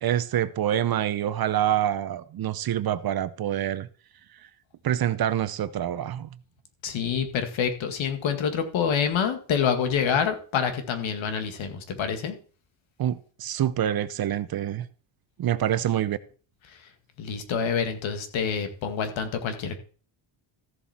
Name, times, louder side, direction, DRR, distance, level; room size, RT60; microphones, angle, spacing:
voice 1, 0.0-3.9 4.8-6.3 13.0-14.9 15.4-16.2, right 11 dB, 50° right, 0.8 m, -26 dB
voice 2, 6.8-12.4 16.7-16.9 17.2-19.8, left 7 dB, 70° left, 2.0 m, -27 dB
14.0 x 7.2 x 4.3 m
cardioid pair, 120°, 48 cm